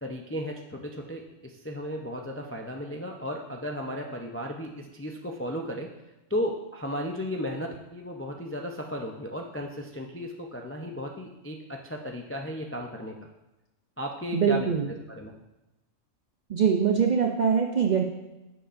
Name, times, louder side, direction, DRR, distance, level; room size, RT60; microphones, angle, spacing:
voice 1, 0.0-5.9 6.3-13.1 14.0-14.7 15.1-15.3, equal, 20° left, 1 dB, 0.3 m, -35 dB
voice 2, 14.3-14.9 16.5-18.0, right 7 dB, 50° right, 2 dB, 0.5 m, -23 dB
10.0 x 7.0 x 2.6 m, 1.0 s
omnidirectional pair, 1.3 m